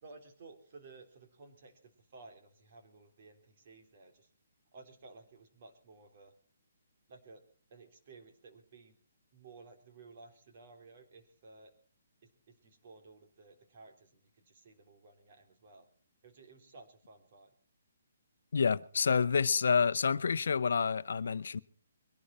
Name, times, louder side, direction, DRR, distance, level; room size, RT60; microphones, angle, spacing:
voice 1, 0.0-4.3 4.7-6.3 7.1-7.4 7.7-9.0 9.3-11.7 12.2-15.9 16.2-17.6, right 3 dB, 45° right, 3.4 m, -56 dB
voice 2, 18.5-21.6, left 5 dB, 75° left, 0.7 m, -28 dB
22.5 x 11.5 x 4.3 m
hypercardioid pair, 160°, 0 cm